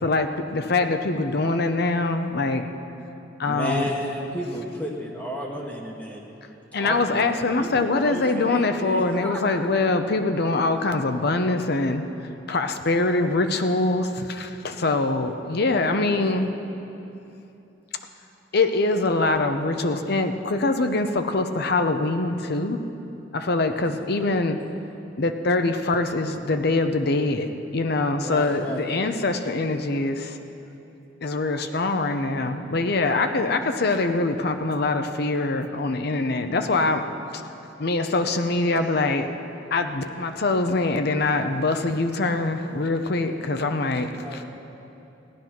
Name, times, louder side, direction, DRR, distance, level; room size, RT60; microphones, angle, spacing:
voice 1, 0.0-2.6 3.4-3.9 6.7-12.0 12.5-16.5 18.5-22.8 23.3-24.6 25.2-30.4 31.2-37.0 37.3-37.4 37.8-39.3 39.7-44.4, left 3 dB, 60° left, 7 dB, 0.7 m, -24 dB
voice 2, 3.4-6.2 6.7-9.4 10.7-10.9 23.7-24.1 28.2-28.8 44.2-44.4, equal, 10° left, -2 dB, 1.2 m, -33 dB
voice 3, 16.0-17.1 38.7-38.9 43.3-43.8, right 2 dB, 40° right, 2 dB, 0.7 m, -42 dB
16.0 x 11.0 x 5.9 m, 2.8 s
head